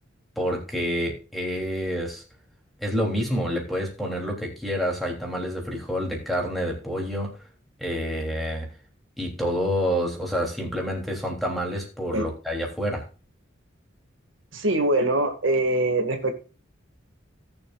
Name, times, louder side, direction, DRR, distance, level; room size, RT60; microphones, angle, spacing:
voice 1, 0.3-2.2 2.8-7.4 7.8-8.7 9.2-13.0, equal, ahead, 0 dB, 3.3 m, -28 dB
voice 2, 14.5-16.3, right 2 dB, 80° right, 4 dB, 2.1 m, -23 dB
18.5 x 7.0 x 2.5 m, 0.34 s
head